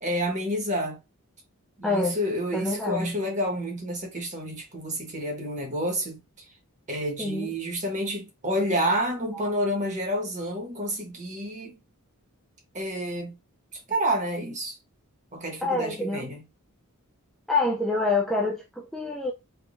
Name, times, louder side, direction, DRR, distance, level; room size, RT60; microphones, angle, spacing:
voice 1, 0.0-1.0 1.8-6.4 6.9-11.8 12.7-13.4 13.7-14.8 15.3-16.4, equal, 35° right, 1.1 m, -29 dB
voice 2, 1.8-2.2 2.5-3.2 7.2-7.5 15.6-16.3 17.5-19.3, left 2 dB, ahead, 0.3 m, -26 dB
3.6 x 2.3 x 2.4 m
head